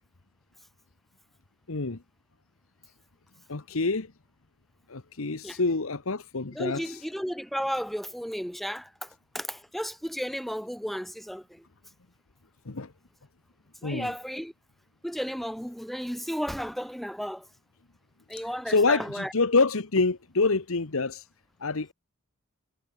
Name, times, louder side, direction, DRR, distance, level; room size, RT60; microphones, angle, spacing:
voice 1, 1.7-2.0 3.5-4.1 4.9-7.0 12.7-12.9 13.8-14.1 18.7-21.2 21.6-21.9, left 3 dB, 70° left, 1.1 m, -26 dB
voice 2, 6.5-9.1 9.3-11.6 13.8-14.5 15.0-17.5 18.3-19.3, equal, ahead, 3.7 m, -33 dB
head